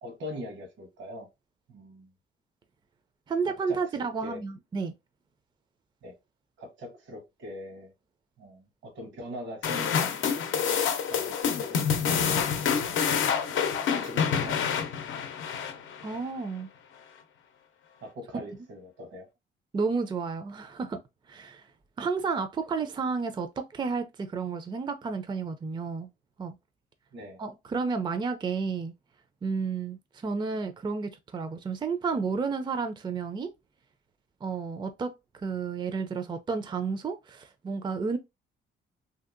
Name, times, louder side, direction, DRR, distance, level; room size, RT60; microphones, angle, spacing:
voice 1, 0.0-1.3 1.7-2.1 3.4-4.4 6.0-6.1 6.6-7.9 8.4-10.1 11.1-12.2 13.5-14.6 18.0-19.3 27.1-27.4, equal, 70° right, 1.1 m, -42 dB
voice 2, 3.3-4.9 16.0-16.7 19.7-21.0 21.3-21.6 22.0-26.1 26.4-26.5 27.4-28.9 29.4-33.5 34.4-38.2, right 5 dB, 25° right, 0.4 m, -31 dB
sound 1, 9.6-16.2, left 7 dB, 75° left, 0.6 m, -27 dB
2.8 x 2.7 x 2.5 m
cardioid pair, 90°, 20 cm